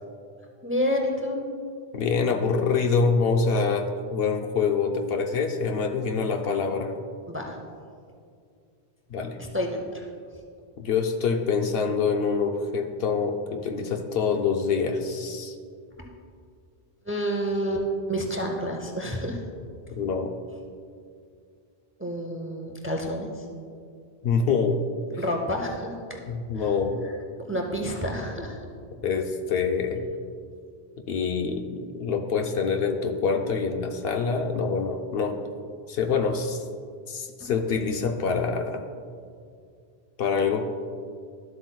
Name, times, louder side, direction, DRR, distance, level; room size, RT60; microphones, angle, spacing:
voice 1, 0.6-1.6 7.3-7.6 9.4-10.1 16.0-16.1 17.0-19.4 22.0-23.4 25.2-26.2 26.5-26.7 27.5-28.6 37.4-37.5, equal, 15° right, 2 dB, 0.5 m, -29 dB
voice 2, 1.9-6.9 9.1-9.4 10.8-15.5 20.0-20.3 24.2-24.8 26.3-27.0 29.0-30.0 31.1-35.4 35.9-36.6 37.1-38.8 40.2-40.6, left 5 dB, 65° left, 5 dB, 0.8 m, -25 dB
12.0 x 7.7 x 2.2 m, 2.2 s
omnidirectional pair, 1.1 m